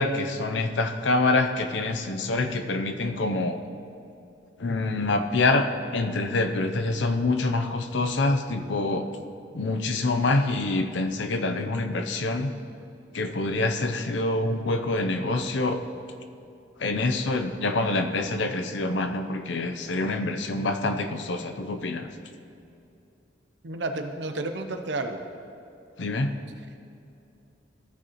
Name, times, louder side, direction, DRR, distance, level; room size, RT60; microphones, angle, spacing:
voice 1, 0.0-3.6 4.6-5.7 5.9-9.1 9.5-12.5 13.1-15.8 16.8-22.1 26.0-26.3, left 2 dB, 80° left, 7 dB, 0.6 m, -26 dB
voice 2, 23.6-25.2, right 2 dB, 75° right, 6 dB, 0.7 m, -31 dB
14.5 x 6.3 x 3.0 m, 2.7 s
head